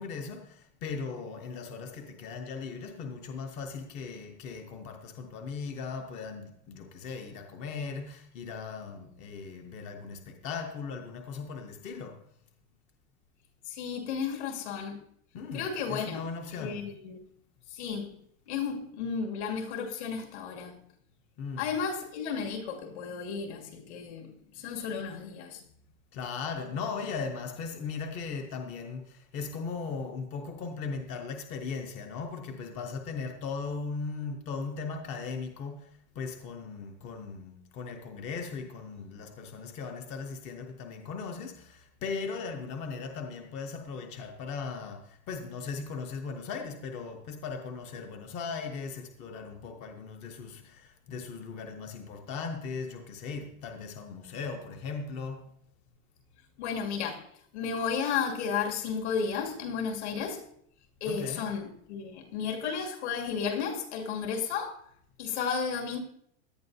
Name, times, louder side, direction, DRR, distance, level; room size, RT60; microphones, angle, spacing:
voice 1, 0.0-12.2 15.3-16.9 21.4-21.7 26.1-55.5 61.1-61.5, left 5 dB, 20° left, 0.6 m, -38 dB
voice 2, 13.6-15.0 15.5-16.2 16.6-17.2 17.7-18.2 18.5-20.8 21.6-25.6 56.6-60.4 61.0-64.8 65.2-66.0, left 6 dB, 70° left, 2.4 m, -33 dB
17.0 x 11.0 x 2.7 m
supercardioid pair, 175°, 35 cm